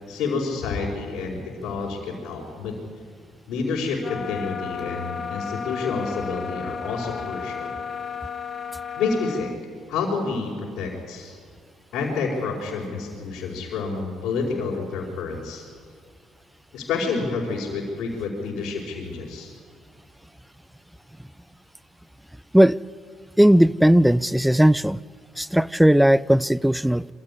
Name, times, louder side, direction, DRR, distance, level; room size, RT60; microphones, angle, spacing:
voice 1, 0.1-2.8 3.5-7.7 8.9-9.5 9.9-11.3 11.9-15.6 16.7-19.5, left 4 dB, 75° left, -6 dB, 4.8 m, -29 dB
sound 1, 4.0-9.6, left 6 dB, 40° left, 1.4 m, -33 dB
voice 2, 23.4-25.0 25.4-27.1, equal, 5° right, 21 dB, 0.5 m, -17 dB
23.5 x 15.0 x 9.9 m, 2.2 s
supercardioid pair, 80°, 0 cm